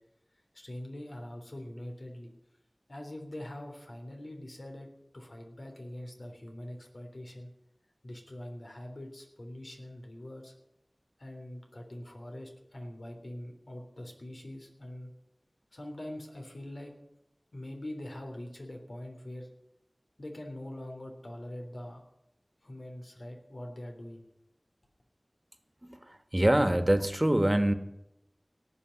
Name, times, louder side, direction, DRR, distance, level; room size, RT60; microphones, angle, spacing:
voice 1, 0.5-2.3 2.9-4.9 5.1-7.5 8.0-10.5 11.2-15.1 15.7-16.9 17.5-19.5 20.2-22.0 22.6-24.2, left 1 dB, 80° left, 2 dB, 3.5 m, -43 dB
voice 2, 26.3-27.7, right 1 dB, 25° right, 10 dB, 1.5 m, -24 dB
18.0 x 7.1 x 10.0 m, 0.84 s
wide cardioid pair, 45°, 0 cm